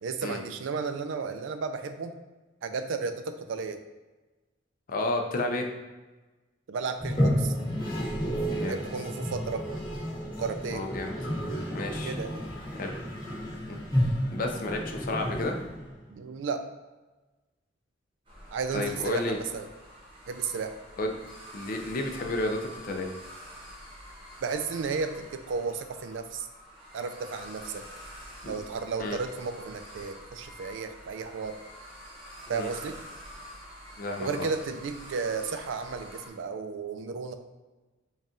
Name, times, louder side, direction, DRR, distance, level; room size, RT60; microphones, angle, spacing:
voice 1, 0.0-2.1 2.6-3.8 6.7-7.5 8.6-9.7 10.4-10.8 12.0-12.4 16.1-16.7 18.5-19.7 20.3-20.8 24.4-26.5 26.9-27.8 28.5-31.6 32.5-33.0 34.2-37.3, right 5 dB, 75° right, 8 dB, 0.4 m, -33 dB
voice 2, 4.9-5.7 8.5-8.8 10.7-11.1 11.7-12.2 12.7-13.0 13.7-13.8 14.3-15.5 18.7-19.4 21.0-21.2 21.5-23.1 29.0-29.2 32.5-32.7 34.0-34.5, left 2 dB, 45° left, 3 dB, 0.5 m, -31 dB
Toilet flush, 7.0-16.1, equal, 25° left, 1.3 m, -31 dB
sound 1, 18.2-36.3, equal, 25° right, 1.0 m, -47 dB
4.1 x 2.4 x 3.6 m, 1.2 s
head